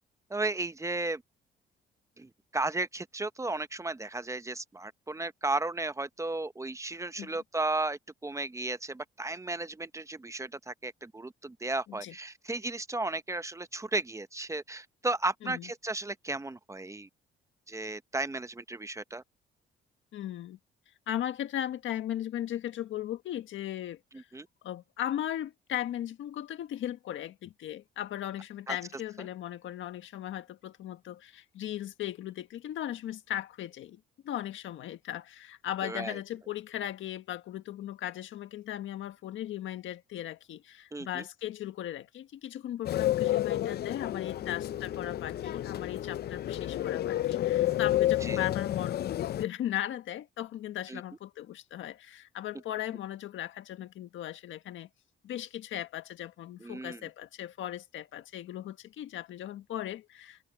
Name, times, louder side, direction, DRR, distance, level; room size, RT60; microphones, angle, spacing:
voice 1, 0.3-1.2 2.2-17.1 17.7-19.2 24.3-24.5 28.7-28.8 35.8-36.2 40.9-41.2 48.2-48.5 50.9-51.0 56.6-57.0, right 2 dB, 15° right, 0.7 m, -34 dB
voice 2, 20.1-20.6 21.1-24.3 24.6-49.1 49.4-54.9 55.2-60.5, left 12 dB, 75° left, 1.6 m, -37 dB
sound 1, 42.8-49.4, left 13 dB, 55° left, 0.4 m, -30 dB
cardioid pair, 90°, 20 cm